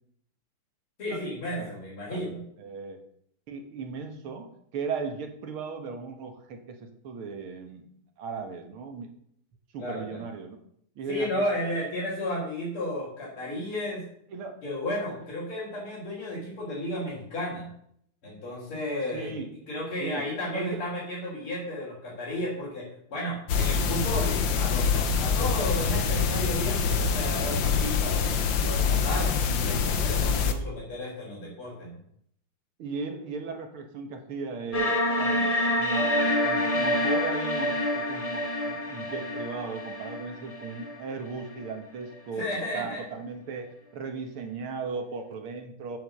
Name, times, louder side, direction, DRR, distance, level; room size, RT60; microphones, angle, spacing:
voice 1, 1.0-2.4 9.8-10.2 11.1-14.1 14.6-17.7 18.2-19.3 19.7-28.4 28.6-31.9 42.3-43.1, left 1 dB, 90° left, -8 dB, 4.8 m, -33 dB
voice 2, 2.1-3.0 3.5-7.8 8.2-9.1 9.7-10.6 11.0-11.4 14.3-14.6 15.2-15.3 19.1-19.7 20.0-20.8 32.8-35.4 35.8-42.4 42.7-46.0, right 5 dB, 80° right, 5 dB, 2.3 m, -37 dB
sound 1, 23.5-30.5, left 5 dB, 65° left, 1.6 m, -25 dB
sound 2, 34.7-41.7, left 1 dB, 25° left, 0.9 m, -27 dB
8.8 x 7.9 x 6.6 m, 0.69 s
omnidirectional pair, 2.3 m